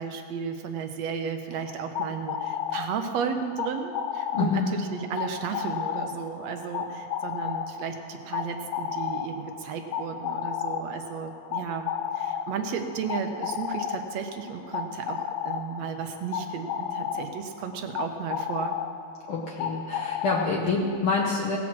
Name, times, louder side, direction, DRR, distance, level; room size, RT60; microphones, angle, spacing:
voice 1, 0.0-18.8, right 6 dB, 70° right, 6 dB, 1.8 m, -34 dB
sound 1, 1.5-21.0, left 8 dB, 85° left, 2.2 m, -33 dB
voice 2, 4.3-4.7 19.3-21.6, left 4 dB, 60° left, -1 dB, 1.5 m, -27 dB
17.5 x 6.2 x 7.2 m, 2.4 s
omnidirectional pair, 3.3 m